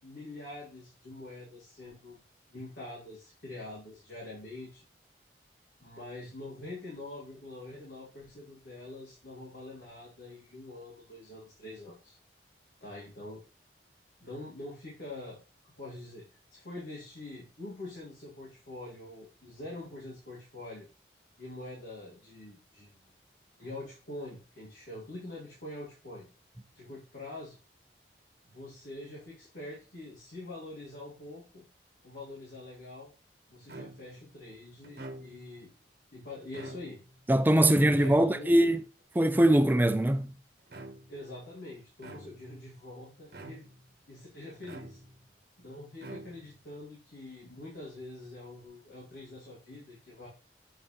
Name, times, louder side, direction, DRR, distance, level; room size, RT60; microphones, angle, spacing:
voice 1, 0.0-2.2 2.5-4.9 5.8-12.2 12.8-13.4 14.2-15.4 15.8-16.3 16.5-20.9 21.4-23.1 23.6-26.3 26.7-27.6 28.4-31.7 32.0-33.1 33.5-35.7 36.1-37.0 37.8-38.8 41.1-43.7 44.1-45.0 45.6-50.3, left 2 dB, 85° left, 2.7 m, -45 dB
sound 1, 33.7-34.2 34.8-35.6 36.4-37.2 37.9-38.6 39.3-40.0 40.7-41.2 42.0-42.6 43.3-43.9 44.6-45.3 46.0-46.7, right 2 dB, 60° right, 1.0 m, -46 dB
voice 2, 37.3-38.8 39.2-40.4, right 1 dB, 10° right, 0.4 m, -22 dB
7.7 x 3.4 x 4.3 m
head